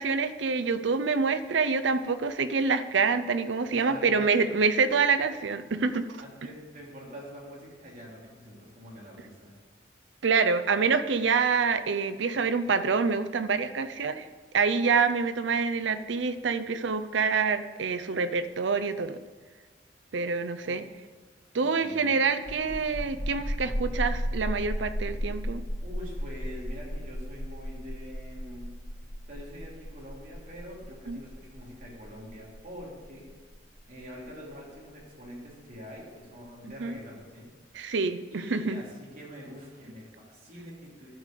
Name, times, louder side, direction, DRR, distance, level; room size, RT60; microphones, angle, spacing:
voice 1, 0.0-6.1 10.2-14.3 14.5-19.2 20.1-20.8 21.5-25.6 31.1-31.2 36.8-37.0 37.7-38.8, right 5 dB, 80° right, 11 dB, 0.6 m, -26 dB
voice 2, 3.7-4.4 6.2-9.5 20.6-20.7 21.5-22.2 25.8-28.7 29.2-33.3 33.9-37.5 38.3-41.1, equal, 45° right, -4 dB, 3.2 m, -45 dB
sound 1, 22.4-35.7, equal, 75° left, 3.1 m, -35 dB
12.0 x 5.2 x 6.7 m, 1.4 s
head